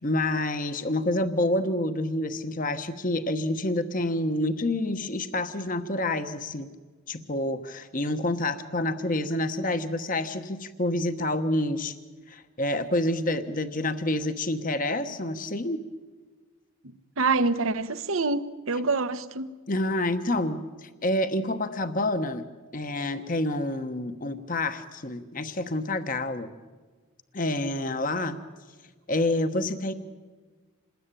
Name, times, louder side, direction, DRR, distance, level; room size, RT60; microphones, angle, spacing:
voice 1, 0.0-6.7 7.1-11.9 12.3-15.8 19.7-22.5 22.7-26.5 27.3-28.4 29.1-29.9, left 1 dB, 40° left, 9 dB, 1.2 m, -28 dB
voice 2, 17.2-19.5, right 3 dB, 85° right, 11 dB, 1.2 m, -26 dB
27.5 x 20.5 x 9.0 m, 1.4 s
head